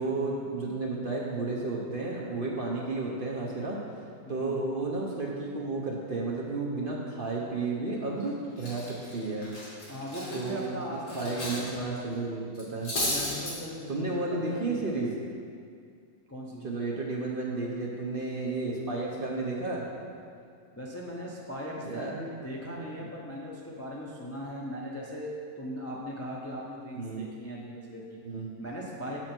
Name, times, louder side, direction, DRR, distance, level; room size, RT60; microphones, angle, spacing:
voice 1, 0.0-3.8 4.3-9.5 10.3-12.9 13.9-15.1 16.6-19.9 21.8-22.1 26.9-27.2 28.2-28.5, right 3 dB, 45° right, -3 dB, 0.7 m, -32 dB
voice 2, 4.2-4.6 9.9-11.6 13.1-14.9 16.3-16.7 20.7-28.1 28.6-29.2, equal, 25° left, -4 dB, 0.3 m, -39 dB
Cutlery silverware, 8.0-8.2 8.6-11.7 12.0-12.1 12.5-13.5, left 1 dB, 45° left, 2.0 m, -34 dB
7.7 x 6.0 x 4.4 m, 2.3 s
omnidirectional pair, 1.7 m